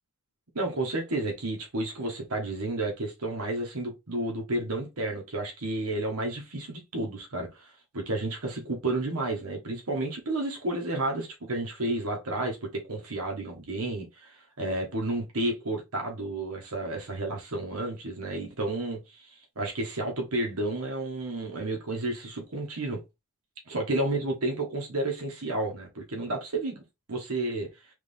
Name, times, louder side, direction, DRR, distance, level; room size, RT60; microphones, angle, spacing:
voice 1, 0.5-23.0 23.7-26.8 27.1-27.7, right 2 dB, 90° right, 1.3 m, -31 dB
3.6 x 3.3 x 3.4 m
head